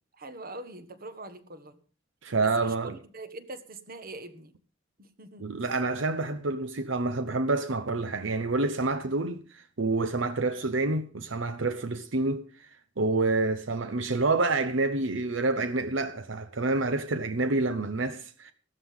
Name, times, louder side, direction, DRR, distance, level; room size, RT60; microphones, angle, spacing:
voice 1, 0.1-1.8 2.4-4.5 5.0-5.4, right 2 dB, 50° right, 1.4 m, -43 dB
voice 2, 2.2-2.9 5.4-18.5, right 3 dB, 75° right, 0.8 m, -28 dB
15.5 x 13.5 x 3.6 m
head